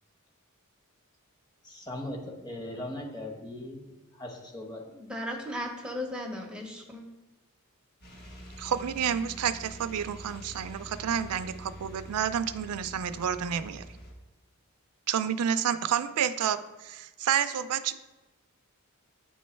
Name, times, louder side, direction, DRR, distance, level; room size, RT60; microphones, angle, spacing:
voice 1, 1.6-3.8 4.1-4.8, left 1 dB, 20° left, 0 dB, 1.0 m, -39 dB
voice 2, 4.9-7.0, left 1 dB, 5° right, 1 dB, 0.8 m, -36 dB
sound 1, 8.0-14.1, equal, 50° left, 1.3 m, -46 dB
voice 3, 8.6-13.9 15.1-18.0, right 8 dB, 85° right, 13 dB, 0.4 m, -29 dB
8.7 x 3.1 x 4.4 m, 1.1 s
head